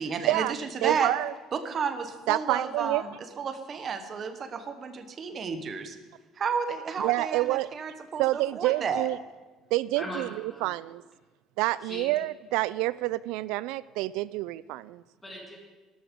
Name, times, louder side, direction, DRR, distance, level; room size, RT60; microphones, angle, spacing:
voice 1, 0.0-1.1 1.5-6.0 6.4-9.1, right 6 dB, 30° right, 8 dB, 1.0 m, -32 dB
voice 2, 0.8-1.3 2.3-3.0 7.0-7.7 8.2-9.2 9.7-10.3 10.6-11.0 11.6-15.0, right 18 dB, 85° right, 18 dB, 0.3 m, -28 dB
voice 3, 9.9-10.9 11.8-12.1 15.2-15.6, equal, 10° left, 0 dB, 2.1 m, -40 dB
12.5 x 12.5 x 5.2 m, 1.3 s
cardioid pair, 180°, 0 cm